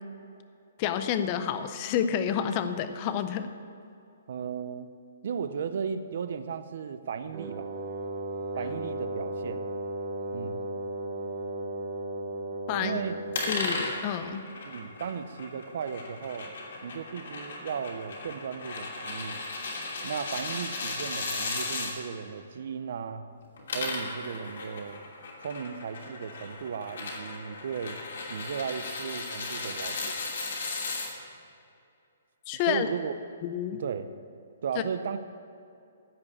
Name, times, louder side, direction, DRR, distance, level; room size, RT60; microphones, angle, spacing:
voice 1, 0.8-3.5 12.7-13.0 13.5-14.4 32.5-32.9 33.4-33.8, left 9 dB, 25° left, 10 dB, 0.5 m, -29 dB
voice 2, 4.3-4.9 5.2-7.7 8.6-9.6 10.3-10.6 12.7-13.2 14.6-16.5 16.8-19.4 20.0-23.3 23.7-25.0 25.4-28.0 28.3-30.1 32.7-33.1 33.7-34.1 34.6-35.2, right 6 dB, 50° right, 12 dB, 0.6 m, -35 dB
Wind instrument woodwind instrument, 7.3-13.9, right 2 dB, 30° right, 2.1 m, -35 dB
sound 1, 13.3-21.9 23.4-31.1, left 3 dB, 60° left, 2.9 m, -36 dB
15.5 x 5.2 x 8.4 m, 2.6 s
hypercardioid pair, 175°, 0 cm